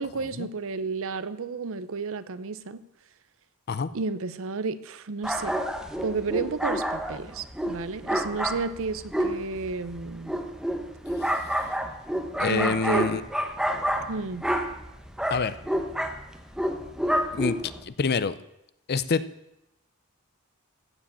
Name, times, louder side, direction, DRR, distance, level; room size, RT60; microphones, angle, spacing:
voice 1, 0.0-2.8 3.9-5.5 6.0-10.3 12.4-13.1 14.1-14.4, right 4 dB, 65° right, 0.6 m, -32 dB
sound 1, 5.2-17.8, equal, 5° right, 1.0 m, -29 dB
voice 2, 12.4-13.2 15.3-15.6 17.3-17.6 17.8-18.3 18.9-19.2, left 5 dB, 45° left, 0.5 m, -26 dB
15.0 x 5.1 x 8.4 m
head